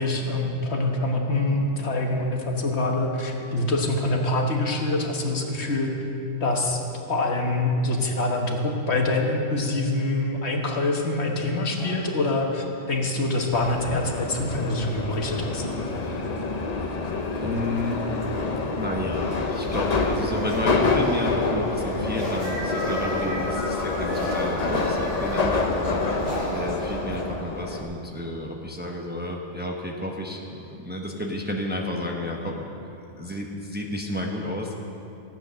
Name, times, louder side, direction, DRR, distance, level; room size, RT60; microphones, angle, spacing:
voice 1, 0.0-6.0 6.4-6.8 7.1-15.6, left 2 dB, 65° left, 1 dB, 1.6 m, -25 dB
sound 1, 11.7-12.7 14.4-14.5 14.8-15.3 15.9-17.4 18.0-18.4 18.8-23.3 23.6-27.5, equal, 55° right, 4.2 m, -39 dB
Subway metro underground, 13.5-27.8, left 3 dB, 40° left, 0.9 m, -27 dB
voice 2, 17.3-18.2 18.8-30.4 30.7-32.7 33.2-34.7, left 1 dB, 10° right, 0 dB, 1.0 m, -31 dB
sound 2, 22.4-27.1, equal, 80° right, 2.4 m, -37 dB
15.0 x 9.2 x 6.4 m, 2.8 s
omnidirectional pair, 1.2 m